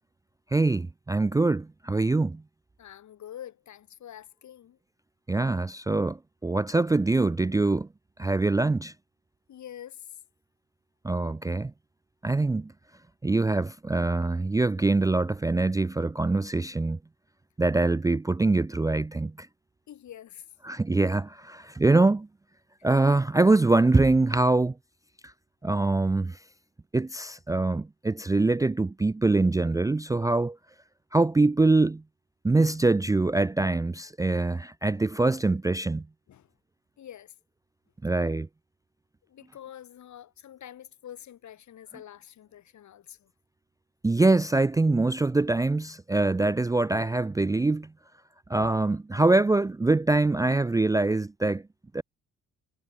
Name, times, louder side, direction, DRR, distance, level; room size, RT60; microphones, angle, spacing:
voice 1, 0.5-2.4 5.3-7.9 8.2-8.9 11.0-11.7 12.2-12.7 13.2-17.0 17.6-19.5 20.6-22.3 22.8-24.7 25.6-26.4 26.9-30.6 31.1-32.0 32.4-36.1 38.0-38.5 44.0-47.9 48.5-51.6 51.9-52.0, right 2 dB, 10° right, 0.4 m, -24 dB
voice 2, 2.8-4.8 9.5-10.2 19.9-20.5 34.8-35.0 36.3-36.5 37.0-37.4 38.1-38.2 39.2-43.3, left 10 dB, 70° left, 7.8 m, -46 dB
cardioid pair, 90°, 30 cm